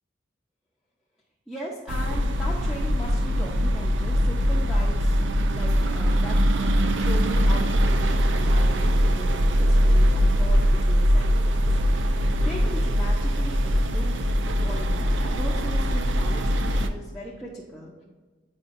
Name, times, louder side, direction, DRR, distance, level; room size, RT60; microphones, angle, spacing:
voice 1, 1.5-5.2 5.5-14.3 14.6-17.9, equal, ahead, -5 dB, 0.7 m, -38 dB
sound 1, 1.9-16.9, equal, 85° right, 0.5 m, -22 dB
9.4 x 4.8 x 2.6 m, 1.3 s
head